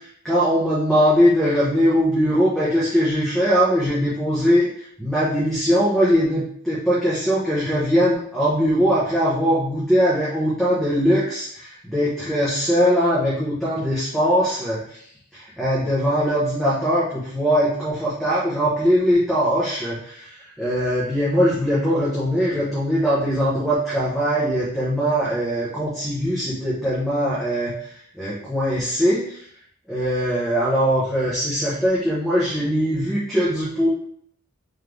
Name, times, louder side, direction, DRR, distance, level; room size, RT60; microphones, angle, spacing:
voice 1, 0.2-4.7 5.0-15.0 15.3-29.4 29.9-33.9, equal, ahead, -10 dB, 0.9 m, -21 dB
3.7 x 3.3 x 3.3 m, 0.65 s
head